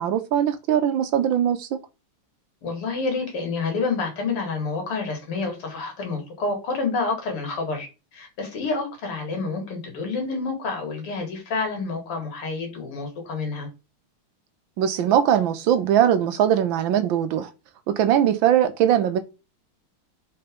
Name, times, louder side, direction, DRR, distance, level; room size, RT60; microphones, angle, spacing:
voice 1, 0.0-1.7 14.8-17.5 17.9-19.2, right 10 dB, 75° right, 1.3 m, -21 dB
voice 2, 2.6-13.7, left 4 dB, 80° left, 2.9 m, -28 dB
4.4 x 4.3 x 5.2 m
omnidirectional pair, 2.4 m